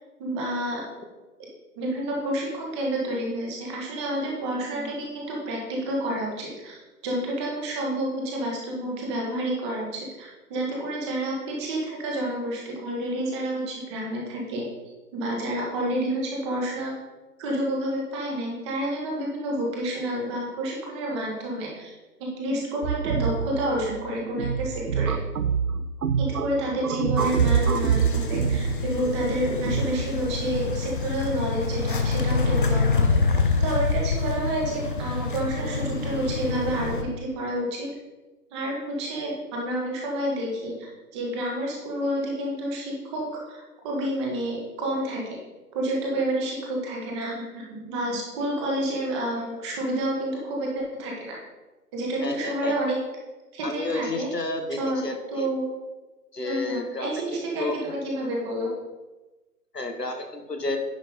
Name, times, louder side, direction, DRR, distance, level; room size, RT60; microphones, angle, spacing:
voice 1, 0.2-0.8 1.4-1.5 1.8-14.6 15.1-16.9 17.4-21.9 22.2-25.1 26.2-33.2 33.6-37.9 38.5-40.7 41.1-45.4 45.7-51.3 51.9-53.0 53.5-54.3 54.8-55.0 55.3-55.7 56.4-58.7, right 1 dB, 20° right, -2 dB, 1.4 m, -29 dB
sound 1, 22.8-29.9, right 7 dB, 70° right, 0.6 m, -26 dB
sound 2, 27.2-37.0, left 4 dB, 35° left, 0.7 m, -26 dB
voice 2, 52.2-52.7 53.6-55.5 56.3-57.8 59.7-60.8, left 2 dB, 85° left, 5 dB, 1.4 m, -31 dB
10.0 x 5.7 x 3.8 m, 1.1 s
figure-of-eight pair, 135°, 47 cm